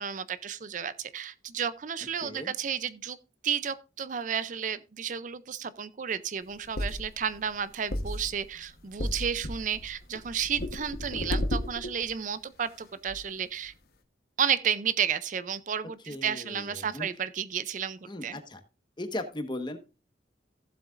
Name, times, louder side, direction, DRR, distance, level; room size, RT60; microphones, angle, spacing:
voice 1, 0.0-3.2 3.4-13.7 14.4-18.4, right 8 dB, 45° right, 0.5 m, -32 dB
voice 2, 2.2-2.5 16.1-17.1 18.1-18.6 19.0-19.8, left 1 dB, 25° left, 1.2 m, -37 dB
sound 1, 6.4-12.2 12.7-12.8 13.1-13.2, left 1 dB, 60° left, 1.1 m, -34 dB
15.5 x 7.7 x 2.5 m
head